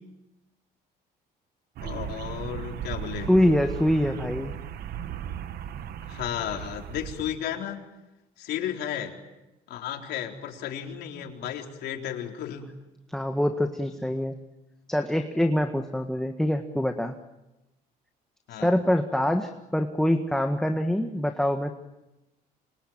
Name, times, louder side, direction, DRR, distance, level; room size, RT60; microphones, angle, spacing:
voice 1, 1.8-3.3 6.0-7.8 8.4-9.2 9.7-12.7 18.5-18.8, left 10 dB, 75° left, 2 dB, 4.2 m, -34 dB
sound 1, 1.8-7.4, right 9 dB, 65° right, 1.5 m, -36 dB
voice 2, 3.3-4.5 13.1-14.4 14.9-17.2 18.6-21.7, left 1 dB, 5° left, 5 dB, 1.7 m, -24 dB
27.0 x 23.5 x 9.0 m, 0.99 s
cardioid pair, 110°, 17 cm